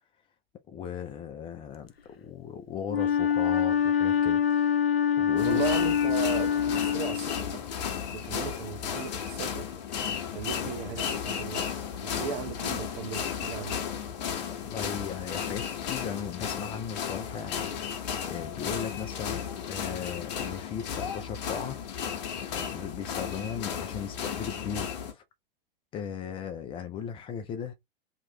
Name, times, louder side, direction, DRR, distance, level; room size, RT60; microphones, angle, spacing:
voice 1, 0.7-4.8 5.2-5.6 14.5-21.8 22.5-25.2 25.9-27.7, left 7 dB, 20° left, 0.5 m, -37 dB
Wind instrument woodwind instrument, 2.9-7.6, left 8 dB, 85° left, 0.5 m, -25 dB
sound 1, 5.4-25.1, left 8 dB, 45° left, 1.0 m, -34 dB
voice 2, 5.4-7.7 8.1-9.7 10.3-11.7 12.0-13.8, right 9 dB, 40° right, 0.6 m, -37 dB
2.9 x 2.5 x 4.3 m
figure-of-eight pair, 100°, 29 cm